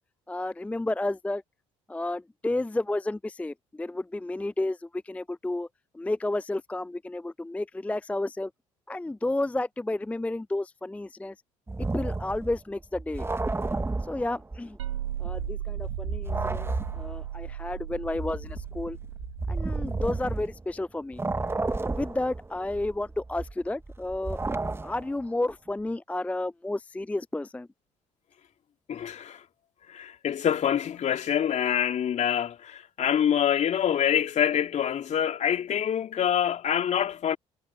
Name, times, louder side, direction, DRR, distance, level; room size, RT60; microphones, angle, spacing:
voice 1, 0.3-1.4 1.9-5.7 5.9-8.5 8.9-11.3 11.8-13.3 14.1-14.8 15.2-16.7 17.0-19.0 19.5-21.2 21.9-24.4 24.8-27.7, left 2 dB, 10° left, 0.5 m, -31 dB
sound 1, 11.7-14.8 15.1-20.8 21.1-25.2, right 3 dB, 15° right, 1.1 m, -33 dB
sound 2, 14.8-20.3, right 11 dB, 85° right, 1.4 m, -36 dB
voice 2, 28.9-29.4 29.9-37.4, left 9 dB, 50° left, 2.8 m, -26 dB
hypercardioid pair, 55°, 16 cm